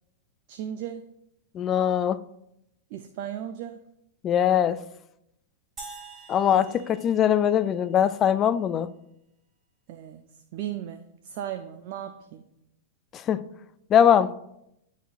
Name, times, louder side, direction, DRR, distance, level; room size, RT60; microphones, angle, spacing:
voice 1, 0.5-1.0 2.9-3.8 6.5-6.7 9.9-12.4, right 10 dB, 50° right, 0.4 m, -36 dB
voice 2, 1.5-2.2 4.2-4.8 6.3-8.9 13.1-13.4 13.9-14.3, left 9 dB, 30° left, 0.3 m, -21 dB
sound 1, 5.8-8.2, right 4 dB, 20° right, 1.7 m, -46 dB
10.5 x 4.1 x 2.4 m
figure-of-eight pair, 100°, 0 cm